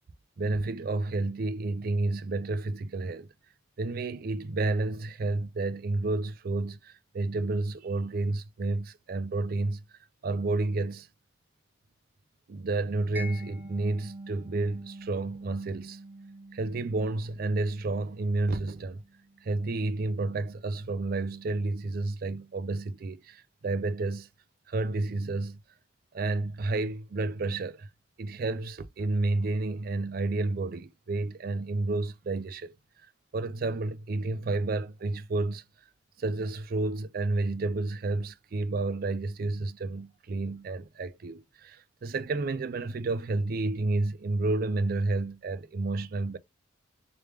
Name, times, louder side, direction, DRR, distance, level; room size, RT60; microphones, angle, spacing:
voice 1, 0.4-3.3 3.8-9.8 10.2-11.1 12.5-16.0 16.5-19.0 19.4-24.3 24.7-25.6 26.1-27.9 28.2-32.8 33.3-35.6 36.2-46.4, right 2 dB, 50° right, 0.4 m, -30 dB
Mallet percussion, 13.2-19.9, right 1 dB, 10° right, 0.8 m, -45 dB
3.4 x 3.1 x 3.2 m
head